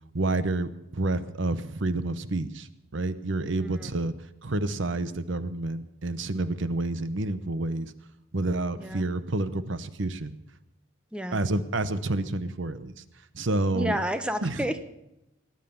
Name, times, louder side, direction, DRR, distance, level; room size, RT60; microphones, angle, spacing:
voice 1, 0.1-7.9 8.3-10.3 11.3-14.0 14.4-14.7, right 2 dB, 65° right, 13 dB, 0.9 m, -29 dB
voice 2, 13.7-14.9, equal, 5° right, 8 dB, 0.9 m, -31 dB
19.5 x 10.0 x 7.0 m, 0.87 s
head